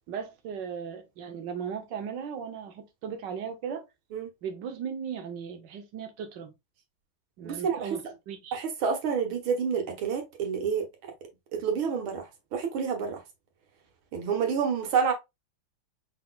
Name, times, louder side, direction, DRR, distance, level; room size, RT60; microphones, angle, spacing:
voice 1, 0.1-3.8 4.4-6.5 7.4-8.6, right 7 dB, 65° right, 1.4 m, -37 dB
voice 2, 7.4-7.9 8.5-10.9 11.5-13.2 14.1-15.1, right 6 dB, 85° right, 2.0 m, -28 dB
5.6 x 3.9 x 2.3 m
omnidirectional pair, 2.2 m